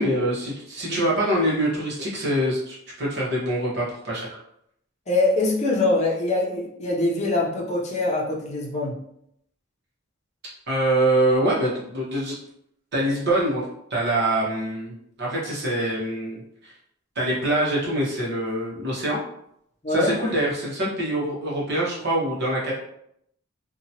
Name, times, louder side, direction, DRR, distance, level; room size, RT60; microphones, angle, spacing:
voice 1, 0.0-4.4 10.7-12.3 12.9-16.7 17.1-19.2 19.9-22.7, right 1 dB, 55° right, -5 dB, 1.0 m, -24 dB
voice 2, 5.1-9.0 19.8-20.1, left 2 dB, 35° left, -2 dB, 0.6 m, -23 dB
2.8 x 2.3 x 2.8 m, 0.74 s
head